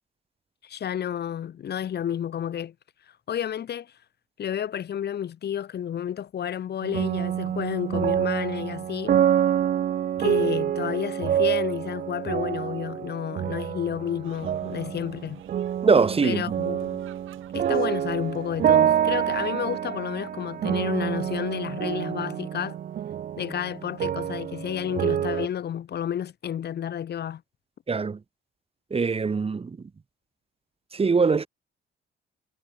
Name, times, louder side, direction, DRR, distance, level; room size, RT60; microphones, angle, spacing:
voice 1, 0.6-2.7 3.3-3.9 4.4-9.2 10.2-15.4 16.2-17.0 17.5-22.8 23.4-27.4, left 9 dB, 55° left, 1.2 m, -31 dB
sound 1, 6.8-25.5, right 10 dB, 45° right, 0.4 m, -27 dB
sound 2, 14.2-19.5, right 14 dB, 85° right, 4.4 m, -52 dB
voice 2, 15.8-16.5 27.9-28.2 28.9-29.8 30.9-31.5, right 4 dB, 30° right, 1.4 m, -22 dB
cardioid pair, 90°, 20 cm